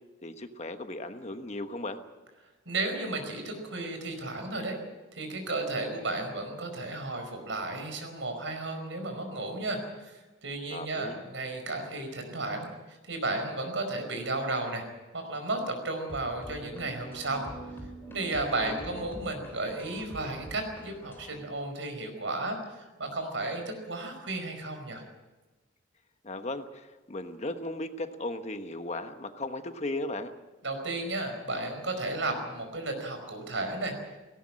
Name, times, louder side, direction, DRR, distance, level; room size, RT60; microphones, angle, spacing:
voice 1, 0.2-2.0 10.7-11.2 18.7-19.1 26.2-30.3, left 2 dB, 35° left, 8 dB, 1.2 m, -36 dB
voice 2, 2.6-4.8 5.1-14.8 15.1-17.4 18.1-25.0 30.6-34.0, right 2 dB, 70° right, 5 dB, 5.0 m, -33 dB
sound 1, 16.1-21.4, right 1 dB, 10° left, 3.3 m, -45 dB
18.0 x 17.0 x 8.7 m, 1.2 s
head